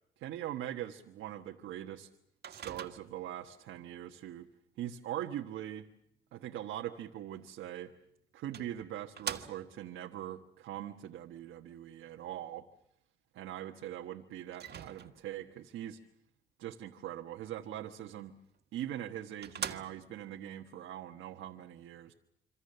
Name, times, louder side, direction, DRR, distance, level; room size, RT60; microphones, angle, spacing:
voice 1, 0.2-2.1 2.5-4.5 4.8-5.9 6.3-7.9 8.3-12.6 13.3-16.0 16.6-18.3 18.7-22.1, right 12 dB, 85° right, 3 dB, 1.3 m, -42 dB
Microwave oven, 2.4-3.3 7.7-7.8 8.5-9.9 14.5-15.4 18.5-18.6 19.1-19.2 19.4-20.3, right 7 dB, 55° right, 1.8 m, -43 dB
26.5 x 25.5 x 6.7 m, 0.76 s
cardioid pair, 90°, 20 cm